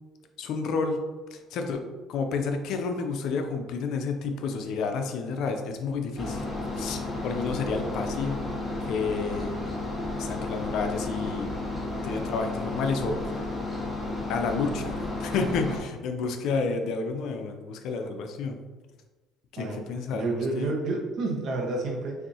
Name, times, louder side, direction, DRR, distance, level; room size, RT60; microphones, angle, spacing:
voice 1, 0.4-1.0 1.3-1.8 2.1-6.4 6.7-8.5 8.8-9.5 10.2-11.5 12.0-13.4 14.3-18.6 19.5-20.7, left 4 dB, 70° left, 5 dB, 0.5 m, -30 dB
sound 1, 6.2-15.8, left 2 dB, 5° left, 1.3 m, -32 dB
voice 2, 20.1-22.1, right 3 dB, 60° right, -1 dB, 1.2 m, -29 dB
5.8 x 2.7 x 2.8 m, 1.2 s
cardioid pair, 110°, 0 cm